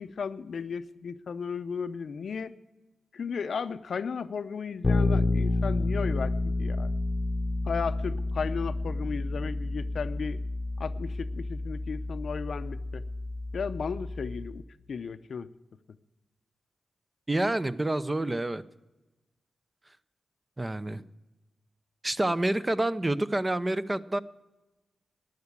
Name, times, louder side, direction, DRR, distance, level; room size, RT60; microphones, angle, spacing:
voice 1, 0.0-2.6 3.1-6.9 7.6-10.4 10.8-13.0 13.5-15.5, left 6 dB, 70° left, 12 dB, 0.6 m, -35 dB
Bass guitar, 4.8-14.7, left 2 dB, 40° left, 0.8 m, -30 dB
voice 2, 17.3-18.6 20.6-21.0 22.0-24.2, right 1 dB, 20° right, 13 dB, 0.6 m, -28 dB
11.5 x 9.6 x 8.3 m, 1.1 s
cardioid pair, 65°, 0 cm